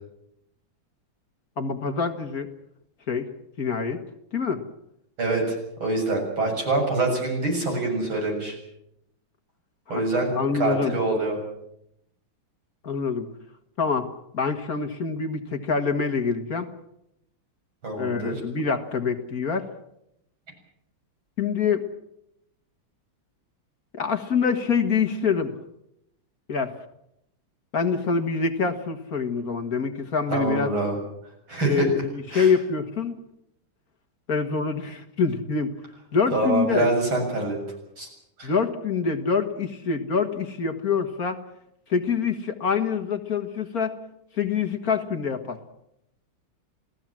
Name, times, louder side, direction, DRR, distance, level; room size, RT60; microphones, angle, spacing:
voice 1, 1.6-2.5 3.1-3.3 3.6-4.0 4.3-4.6 9.9-10.9 12.8-13.3 13.8-14.1 14.3-16.7 18.0-19.7 21.4-21.8 23.9-25.5 26.5-26.7 27.7-30.7 31.6-33.2 34.3-35.7 36.1-36.9 38.4-41.4 41.9-43.9 44.3-45.6, left 5 dB, 50° left, 6 dB, 2.0 m, -25 dB
voice 2, 5.2-5.5 5.8-8.6 9.9-11.4 17.8-18.4 30.3-31.0 31.5-31.9 32.3-32.5 36.3-37.6 38.0-38.1 38.4-38.5, right 2 dB, 90° right, 2 dB, 8.1 m, -25 dB
28.0 x 17.5 x 7.5 m, 0.80 s
omnidirectional pair, 2.2 m